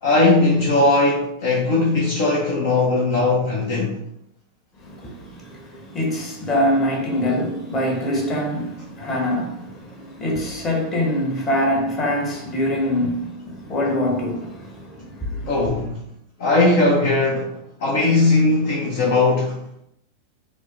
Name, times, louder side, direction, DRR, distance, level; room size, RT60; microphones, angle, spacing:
voice 1, 0.0-4.0 15.5-16.0 16.4-17.5 17.8-19.6, left 2 dB, 50° left, 0.7 m, -19 dB
voice 2, 4.8-15.6, left 1 dB, 25° left, 1.3 m, -24 dB
4.8 x 2.1 x 3.3 m
figure-of-eight pair, 90°, 0 cm